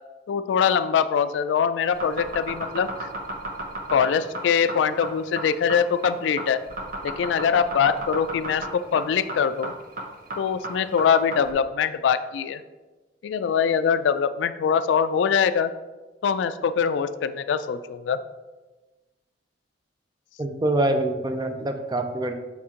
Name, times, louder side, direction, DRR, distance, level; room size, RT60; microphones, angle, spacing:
voice 1, 0.3-3.1 3.9-6.6 7.0-9.7 10.4-12.6 13.2-15.7 16.2-18.2, left 7 dB, 75° left, 12 dB, 0.3 m, -23 dB
sound 1, 1.9-11.5, right 1 dB, 50° right, 0.8 m, -33 dB
voice 2, 20.4-22.3, right 2 dB, 20° right, 6 dB, 0.5 m, -25 dB
5.9 x 4.3 x 3.7 m, 1.2 s
head